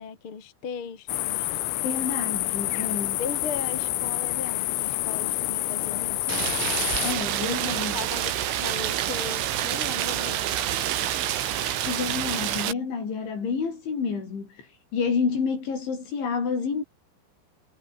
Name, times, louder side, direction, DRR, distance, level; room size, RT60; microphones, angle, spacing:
voice 1, 0.0-1.6 3.2-6.4 7.4-10.6, left 6 dB, 35° left, 2.8 m, -37 dB
sound 1, 1.1-7.1, left 17 dB, 90° left, 3.9 m, -28 dB
voice 2, 1.8-3.2 7.0-8.0 11.9-14.7 14.9-16.8, left 5 dB, 65° left, 8.7 m, -29 dB
Rain, 6.3-12.7, right 11 dB, 75° right, 4.6 m, -27 dB
omnidirectional pair, 5.7 m